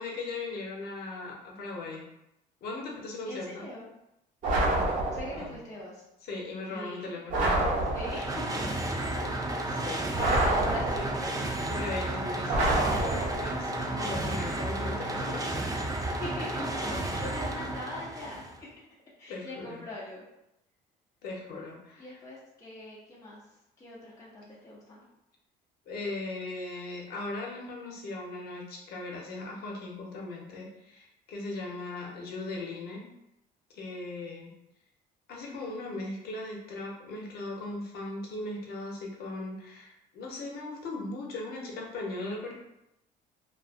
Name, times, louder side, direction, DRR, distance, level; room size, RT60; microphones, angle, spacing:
voice 1, 0.0-2.1 2.6-3.6 5.3-5.5 6.3-7.5 9.0-9.4 9.7-10.1 11.7-15.5 19.3-19.8 21.2-22.1 25.9-33.0 33.7-34.5 35.3-42.5, left 2 dB, 65° left, -1 dB, 0.8 m, -38 dB
voice 2, 3.2-3.9 5.1-6.0 6.7-7.2 7.9-8.4 9.8-11.5 16.1-18.7 19.2-20.2 22.0-23.4 23.8-25.0, left 1 dB, 20° left, -7 dB, 0.6 m, -41 dB
sound 1, 4.4-5.5 7.3-8.4 10.2-11.3 12.5-13.6, right 2 dB, 50° right, 0.9 m, -27 dB
sound 2, 7.8-18.6, right 1 dB, 20° right, 0.4 m, -32 dB
2.4 x 2.3 x 2.4 m, 0.85 s
cardioid pair, 110°, 17 cm